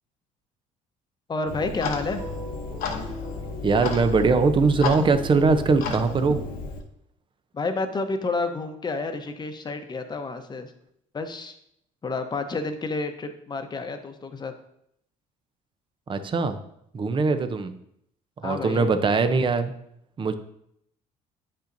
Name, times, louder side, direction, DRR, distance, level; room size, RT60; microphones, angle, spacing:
voice 1, 1.3-2.2 7.5-10.7 11.1-11.5 12.0-14.5 17.3-17.4 18.4-18.9, left 3 dB, 30° left, 7 dB, 0.9 m, -30 dB
Clock, 1.5-6.8, left 5 dB, 70° left, 1.0 m, -33 dB
sound 1, 1.5-5.7, right 2 dB, 65° right, 1.3 m, -42 dB
voice 2, 3.6-6.4 16.1-16.6 16.9-17.7 18.4-19.7 20.2-20.3, right 4 dB, 30° right, 10 dB, 0.7 m, -21 dB
8.7 x 5.4 x 2.6 m, 0.74 s
supercardioid pair, 90°, 16 cm